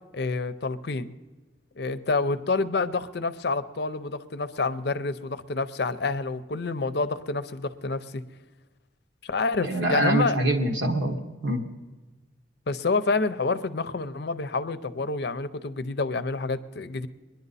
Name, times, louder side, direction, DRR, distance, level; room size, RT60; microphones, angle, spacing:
voice 1, 0.1-1.1 1.8-8.2 9.2-10.4 12.7-17.1, left 3 dB, 60° left, 13 dB, 0.6 m, -28 dB
voice 2, 9.6-11.7, right 1 dB, 85° right, 3 dB, 1.4 m, -25 dB
22.5 x 10.5 x 4.1 m, 1.2 s
head